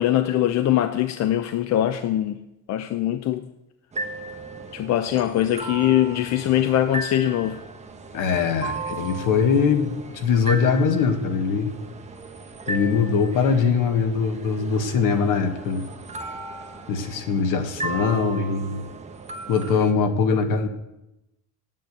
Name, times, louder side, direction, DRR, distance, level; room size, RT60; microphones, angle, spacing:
voice 1, 0.0-2.4 2.7-3.5 4.7-7.6, left 12 dB, 50° left, 10 dB, 0.6 m, -22 dB
sound 1, 3.9-19.9, right 3 dB, 20° right, 1.0 m, -36 dB
voice 2, 8.1-11.7 12.7-15.8 16.9-18.8 19.5-20.7, left 5 dB, 70° left, 6 dB, 1.7 m, -22 dB
9.3 x 8.8 x 8.1 m, 0.92 s
cardioid pair, 160°, 33 cm